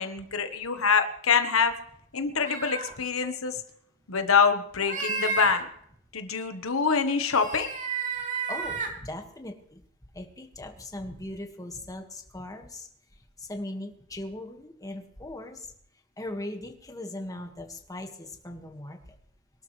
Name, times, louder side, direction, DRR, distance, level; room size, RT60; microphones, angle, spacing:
voice 1, 0.0-1.7 2.1-3.6 4.1-5.7 6.1-7.7, left 5 dB, 75° left, 8 dB, 1.3 m, -25 dB
sound 1, 2.3-2.9 4.8-5.6 7.3-8.9, right 4 dB, 40° right, 2.9 m, -32 dB
voice 2, 8.5-9.8 10.1-12.9 13.4-15.7 16.2-19.0, left 1 dB, 15° left, 4 dB, 1.8 m, -39 dB
23.5 x 12.0 x 3.3 m, 0.68 s
head